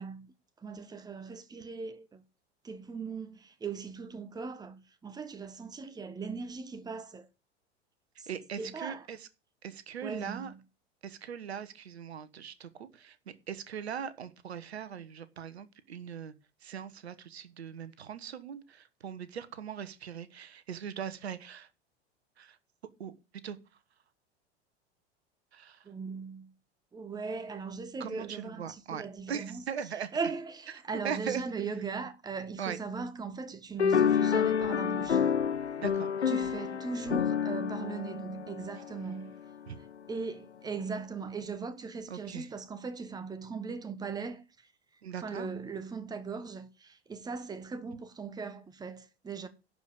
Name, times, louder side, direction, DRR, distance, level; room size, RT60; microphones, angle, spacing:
voice 1, 0.0-2.2 2.6-7.3 8.2-8.3 8.6-9.1 10.0-10.6 25.8-26.5 26.9-29.6 30.1-35.3 36.3-39.3 39.8-44.7 45.2-49.5, right 4 dB, 10° right, 1.2 m, -39 dB
voice 2, 8.3-9.3 9.6-10.5 11.0-16.3 16.6-21.7 22.4-22.6 23.0-23.1 23.4-23.6 25.5-25.9 28.0-30.1 31.0-31.4 32.6-32.8 35.8-36.3 39.7-39.8 42.1-42.5 45.0-45.5, right 8 dB, 70° right, 1.2 m, -40 dB
sound 1, 33.8-39.3, left 7 dB, 90° left, 0.5 m, -29 dB
11.5 x 5.1 x 8.6 m
figure-of-eight pair, 85°, 33 cm